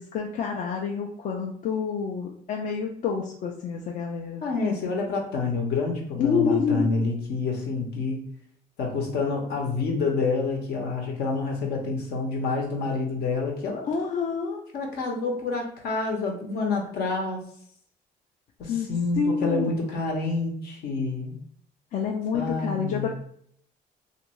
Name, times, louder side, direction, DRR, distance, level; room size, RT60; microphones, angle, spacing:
voice 1, 0.0-4.4 6.2-6.9 13.8-14.6 18.7-19.7 21.9-23.1, left 6 dB, 50° left, 0 dB, 0.4 m, -28 dB
voice 2, 4.4-8.2 8.8-13.8 14.7-17.4 18.6-21.4 22.3-23.1, left 3 dB, 70° left, 1 dB, 0.8 m, -28 dB
2.6 x 2.5 x 3.0 m, 0.63 s
cardioid pair, 110°, 17 cm